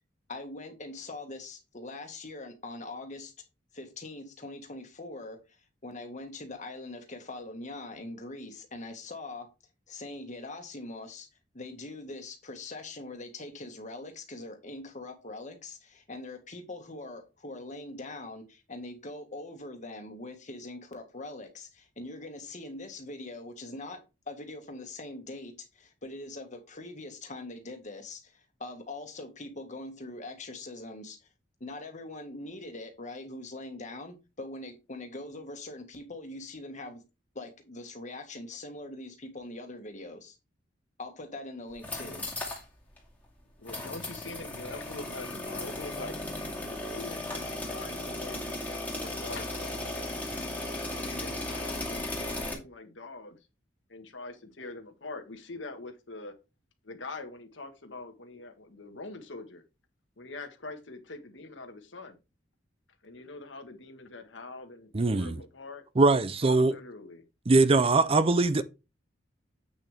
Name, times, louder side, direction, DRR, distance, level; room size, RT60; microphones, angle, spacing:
voice 1, 0.3-3.3 3.7-5.4 5.8-9.5 9.9-11.3 11.5-31.3 31.6-37.0 37.4-40.4 41.0-42.3, left 2 dB, 40° left, 1.8 m, -42 dB
sound 1, 41.7-42.6 43.0-43.1 43.7-52.5, left 1 dB, 10° left, 2.4 m, -36 dB
voice 2, 43.6-46.3 46.6-50.0 50.9-53.4 53.9-56.3 56.8-59.6 60.2-62.2 63.0-65.8 66.5-67.2, left 3 dB, 80° left, 1.6 m, -44 dB
voice 3, 64.9-65.4 66.0-66.8 67.5-68.6, right 3 dB, 30° right, 0.5 m, -22 dB
8.3 x 6.5 x 3.5 m
head